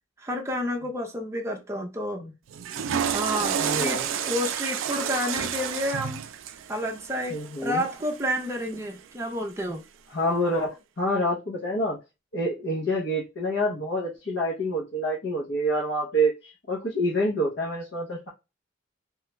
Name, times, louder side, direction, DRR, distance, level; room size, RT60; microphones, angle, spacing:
voice 1, 0.2-2.3 3.1-6.2 6.7-9.8, equal, 15° right, 1 dB, 0.5 m, -30 dB
Water / Toilet flush, 2.5-8.7, right 8 dB, 80° right, 0.3 m, -30 dB
voice 2, 3.6-4.1 7.3-7.8 10.1-12.0 12.3-18.3, equal, 60° left, -4 dB, 0.7 m, -27 dB
3.1 x 2.3 x 3.0 m, 0.26 s
head